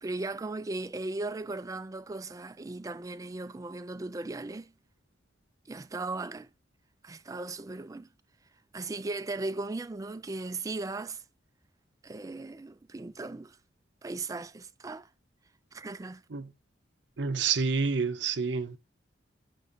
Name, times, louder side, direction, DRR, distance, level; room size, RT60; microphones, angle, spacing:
voice 1, 0.0-4.7 5.7-6.5 7.0-8.1 8.7-11.2 12.0-13.6 14.0-15.1 15.7-16.2, right 2 dB, 20° right, 0.3 m, -37 dB
voice 2, 17.2-18.8, right 5 dB, 65° right, 0.6 m, -28 dB
6.0 x 4.1 x 4.7 m
head